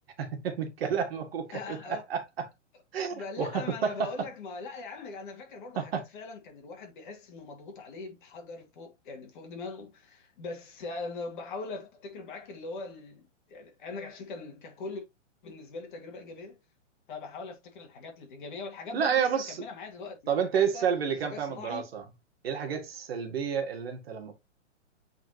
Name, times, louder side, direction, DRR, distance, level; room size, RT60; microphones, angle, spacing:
voice 1, 0.2-2.5 2.9-4.1 5.8-6.0 18.9-19.6 20.3-22.0 22.4-24.3, right 7 dB, 50° right, 2.0 m, -30 dB
voice 2, 1.5-2.0 3.1-15.0 15.4-16.6 17.1-20.3 20.7-20.8 21.3-21.9, left 4 dB, 40° left, 2.4 m, -41 dB
8.1 x 4.3 x 2.9 m
hypercardioid pair, 160°, 37 cm